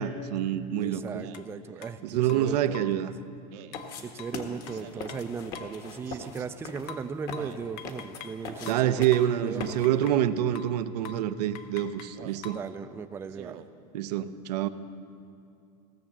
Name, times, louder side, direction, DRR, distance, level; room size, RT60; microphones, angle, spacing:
voice 1, 0.0-1.2 2.0-3.1 8.7-12.6 13.9-14.7, right 11 dB, 90° right, 11 dB, 0.6 m, -27 dB
voice 2, 0.8-2.0 2.3-3.1 4.0-9.1 9.3-9.8 12.4-13.6, right 6 dB, 10° right, 10 dB, 0.3 m, -37 dB
Speech synthesizer, 1.2-1.5 2.3-2.7 3.5-3.8 4.7-5.1 6.0-6.5 7.3-7.7 8.6-8.9 9.8-10.1 11.0-11.2 12.1-12.5 13.3-13.7, right 11 dB, 60° right, 0.7 m, -47 dB
sound 1, 1.3-1.5 1.8-2.0 2.3-3.0 3.7-5.8 6.9-8.4 8.7-10.3 10.6-10.8 11.0-11.3 11.6-12.7, left 7 dB, 70° left, 0.8 m, -45 dB
sound 2, 3.7-10.1, left 4 dB, 50° left, 1.5 m, -41 dB
17.0 x 6.4 x 7.3 m, 2.5 s
supercardioid pair, 130°, 20 cm